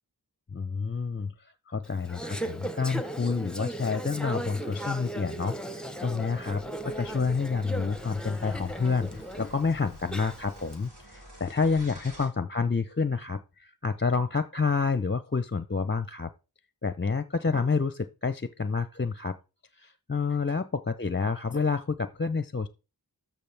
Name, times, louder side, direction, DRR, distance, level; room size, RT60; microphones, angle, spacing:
voice 1, 0.5-16.3 16.8-19.4 19.7-22.7, left 4 dB, 30° left, 12 dB, 0.6 m, -29 dB
Conversation / Chatter, 1.8-10.8, right 1 dB, ahead, 0.9 m, -37 dB
sound 1, 6.3-12.3, right 1 dB, 85° right, 4.5 m, -50 dB
13.0 x 6.0 x 3.4 m, 0.31 s
wide cardioid pair, 40°, 38 cm